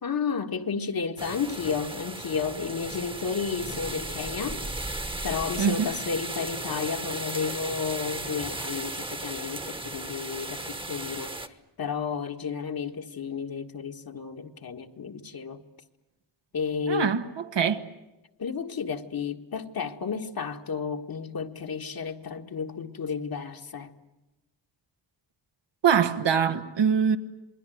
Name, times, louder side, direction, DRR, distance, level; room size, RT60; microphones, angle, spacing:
voice 1, 0.0-4.9 5.2-15.6 16.5-17.1 18.4-23.9, left 6 dB, 55° left, 1.7 m, -32 dB
sound 1, 1.2-11.5, right 2 dB, 10° right, 1.2 m, -35 dB
voice 2, 5.6-5.9 16.9-17.9 25.8-27.2, right 7 dB, 85° right, 1.6 m, -23 dB
28.0 x 21.0 x 9.2 m
wide cardioid pair, 150°, 42 cm